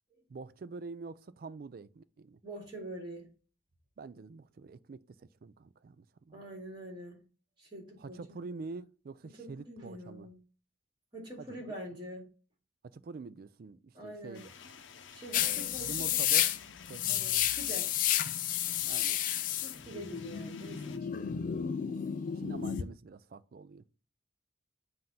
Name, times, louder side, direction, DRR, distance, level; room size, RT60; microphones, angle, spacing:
voice 1, 0.3-2.4 4.0-6.4 8.0-10.3 11.4-11.6 12.8-14.5 15.4-16.5 16.9-17.0 18.9-19.2 22.4-23.8, right 4 dB, 50° right, 0.3 m, -46 dB
voice 2, 2.4-3.3 6.3-7.2 7.6-8.4 9.4-10.3 11.1-12.2 13.9-14.4 15.1-16.2 17.1-17.9 19.6-21.1, right 1 dB, 25° right, 2.2 m, -45 dB
sound 1, 14.3-21.0, left 7 dB, 80° left, 0.7 m, -52 dB
sound 2, 15.3-22.8, left 10 dB, 45° left, 0.4 m, -31 dB
7.6 x 2.6 x 5.5 m
head